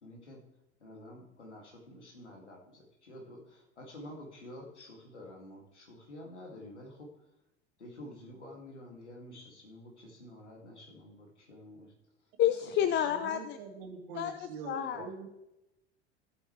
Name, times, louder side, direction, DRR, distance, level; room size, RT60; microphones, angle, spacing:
voice 1, 0.0-0.5 0.8-7.2 7.8-12.0 12.5-12.6 13.0-13.1 14.8-15.1, left 1 dB, 80° left, 0 dB, 2.6 m, -49 dB
voice 2, 12.4-13.6 14.1-14.4 14.6-15.1, left 10 dB, 30° left, 10 dB, 0.6 m, -29 dB
voice 3, 13.0-15.3, right 6 dB, 60° right, 5 dB, 1.8 m, -44 dB
15.5 x 8.2 x 3.3 m, 0.91 s
figure-of-eight pair, 75°, 34 cm